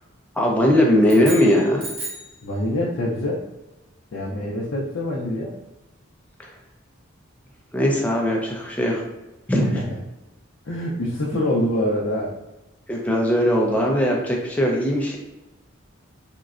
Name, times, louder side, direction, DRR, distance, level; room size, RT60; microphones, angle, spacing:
voice 1, 0.4-1.9 6.4-6.5 7.7-9.0 9.5-9.8 12.9-15.2, equal, 5° left, -1 dB, 0.4 m, -19 dB
sound 1, 1.0-2.4, right 2 dB, 85° right, 1.0 m, -34 dB
voice 2, 2.4-3.4 4.1-5.6 9.6-9.7 10.6-12.3, left 1 dB, 65° left, -5 dB, 0.5 m, -25 dB
3.6 x 2.1 x 2.4 m, 0.98 s
head